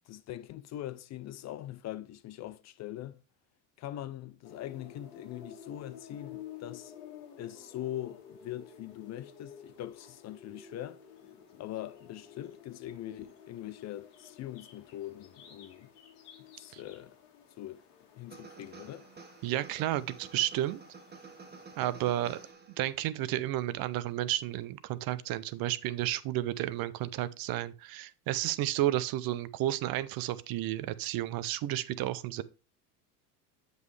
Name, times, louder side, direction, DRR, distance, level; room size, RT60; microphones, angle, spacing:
voice 1, 0.1-3.2 3.8-6.9 7.4-11.0 11.6-15.9 16.6-17.2 17.6-17.8 18.2-19.1, left 13 dB, 40° left, 0.4 m, -42 dB
sound 1, 4.4-22.5, left 8 dB, 80° left, 1.7 m, -53 dB
sound 2, 18.3-23.1, right 4 dB, 20° right, 1.1 m, -51 dB
voice 2, 19.4-20.8 21.8-22.4 22.8-32.4, right 14 dB, 50° right, 0.6 m, -32 dB
7.8 x 5.3 x 3.2 m
supercardioid pair, 90°, 45 cm